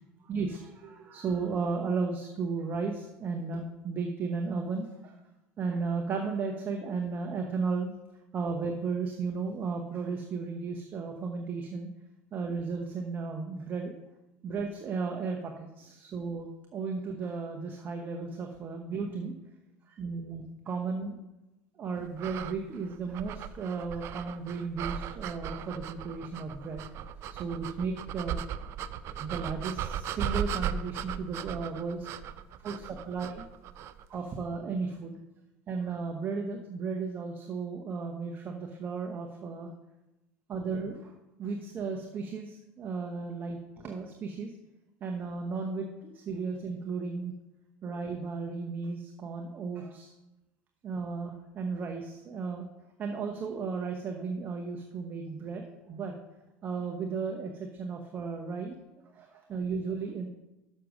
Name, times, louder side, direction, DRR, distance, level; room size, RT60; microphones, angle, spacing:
voice 1, 0.3-5.1 5.6-7.9 8.3-11.9 12.3-13.9 14.4-19.3 19.9-21.2 21.8-26.8 27.3-28.4 29.2-32.1 32.6-33.5 34.1-35.2 35.7-39.7 40.5-41.1 41.4-43.6 43.8-44.5 45.0-47.3 47.8-50.1 50.8-52.7 53.0-56.1 56.6-58.8 59.2-60.3, right 4 dB, 35° right, 3 dB, 1.0 m, -34 dB
sound 1, 22.2-34.1, right 9 dB, 50° right, 0.5 m, -37 dB
6.6 x 6.3 x 6.3 m, 0.98 s
supercardioid pair, 100°, 6 cm